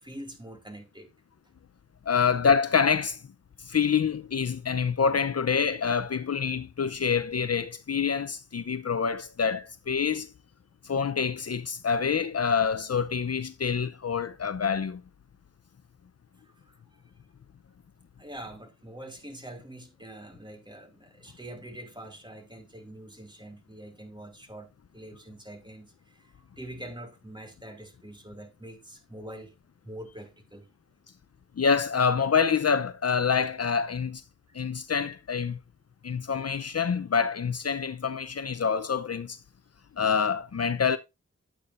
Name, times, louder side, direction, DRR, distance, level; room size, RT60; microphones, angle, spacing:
voice 1, 0.0-1.1 16.4-16.8 18.2-29.5 29.8-30.7, right 1 dB, 15° right, 2.6 m, -44 dB
voice 2, 2.1-3.2 3.6-10.3 10.8-15.0 31.6-34.2 34.5-35.6 36.0-39.4 40.0-41.0, left 6 dB, 55° left, 0.7 m, -26 dB
10.5 x 8.7 x 2.5 m
wide cardioid pair, 65°, 30 cm